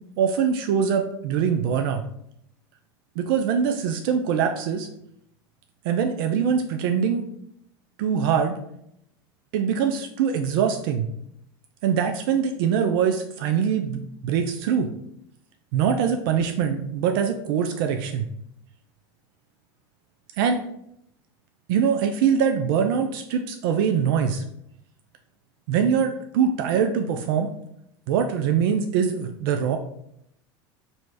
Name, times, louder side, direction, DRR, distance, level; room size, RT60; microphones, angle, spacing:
voice 1, 0.2-2.0 3.2-4.9 5.8-7.3 8.0-8.6 9.5-11.1 11.8-14.9 15.7-18.3 20.4-20.6 21.7-24.4 25.7-27.5 28.1-29.8, right 7 dB, 70° right, 6 dB, 0.4 m, -23 dB
3.1 x 2.8 x 4.5 m, 0.75 s
supercardioid pair, 100°, 12 cm